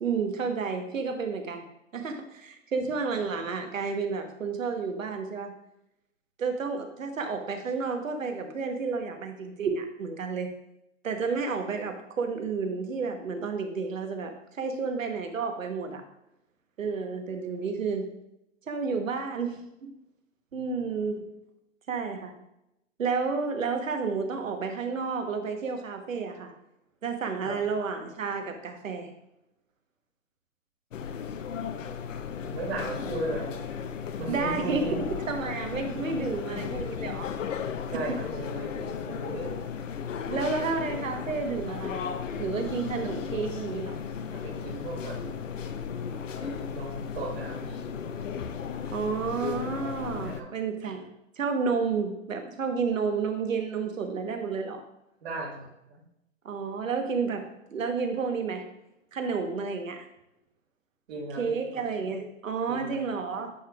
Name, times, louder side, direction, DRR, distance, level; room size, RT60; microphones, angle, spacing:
voice 1, 0.0-1.6 1.9-5.5 6.4-10.5 11.0-16.0 16.8-18.1 18.7-19.9 20.5-21.3 21.9-22.3 23.0-26.5 27.0-29.1 34.3-37.3 38.1-38.2 40.3-42.1 42.4-44.0 48.9-51.1 51.4-54.8 56.4-58.6 59.1-60.1 61.4-63.5, right 5 dB, 85° right, 5 dB, 1.2 m, -31 dB
voice 2, 20.5-20.9 27.4-27.6 32.4-33.5 34.2-35.0 37.9-39.5 44.3-45.2 46.4-47.9 50.2-50.5 55.2-56.0 61.1-61.8 62.7-63.0, right 2 dB, 55° right, -6 dB, 2.3 m, -36 dB
sound 1, 30.9-50.4, left 7 dB, 75° left, 0.7 m, -35 dB
9.8 x 4.9 x 2.4 m, 0.84 s
hypercardioid pair, 130°, 38 cm